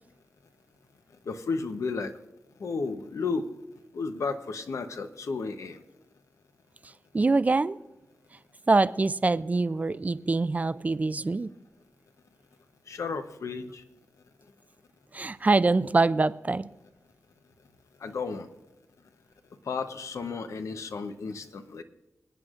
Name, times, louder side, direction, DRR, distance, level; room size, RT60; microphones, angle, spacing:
voice 1, 1.3-2.1 2.6-3.5 3.9-5.8 12.9-13.8 18.0-18.5 19.7-21.8, left 4 dB, 75° left, 8 dB, 0.9 m, -33 dB
voice 2, 7.1-7.8 8.7-11.5 15.1-16.7, right 3 dB, 30° right, 15 dB, 0.4 m, -24 dB
27.5 x 9.3 x 2.5 m, 0.98 s
wide cardioid pair, 100°, 5 cm